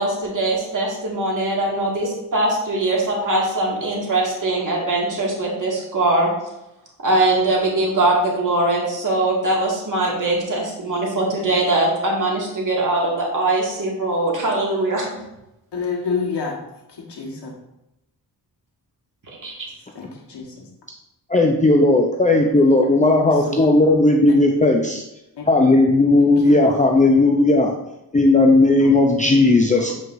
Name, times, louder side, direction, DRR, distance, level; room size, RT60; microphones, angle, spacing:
voice 1, 0.0-6.3 7.0-15.1 19.3-19.7, right 2 dB, 50° right, -3 dB, 2.0 m, -21 dB
voice 2, 15.7-16.6 16.9-17.5 19.9-20.5 23.5-23.7 25.3-25.4 26.2-26.8 28.4-28.5 28.8-29.4, left 5 dB, 75° left, -1 dB, 1.4 m, -29 dB
voice 3, 21.3-25.0 25.5-27.7 28.1-29.9, left 2 dB, 20° left, 1 dB, 0.6 m, -15 dB
7.7 x 4.9 x 2.6 m, 0.89 s
cardioid pair, 75°, 40 cm